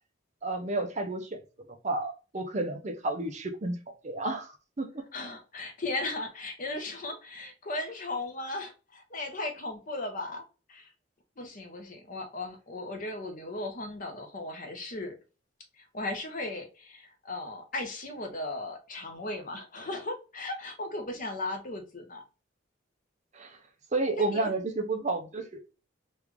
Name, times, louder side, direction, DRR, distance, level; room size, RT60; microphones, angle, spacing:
voice 1, 0.4-1.4 1.8-5.0 23.3-23.6 23.9-25.6, right 2 dB, 35° right, 0.5 m, -31 dB
voice 2, 5.1-10.4 10.7-10.9 11.4-15.1 15.8-22.2 24.2-24.6, left 2 dB, 40° left, 0.7 m, -36 dB
3.1 x 2.4 x 3.4 m
head